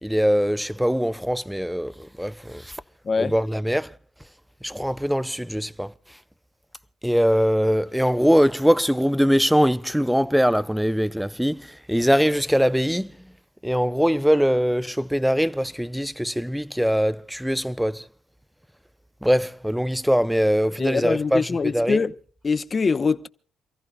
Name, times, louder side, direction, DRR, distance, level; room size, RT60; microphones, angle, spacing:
voice 1, 0.0-2.8 3.2-3.9 4.6-5.9 7.0-13.1 13.6-18.0 19.2-22.0, equal, ahead, 0.6 m, -22 dB
voice 2, 20.8-22.1 22.4-23.3, left 5 dB, 35° left, 0.9 m, -23 dB
28.5 x 15.0 x 2.3 m
cardioid pair, 90°, 0 cm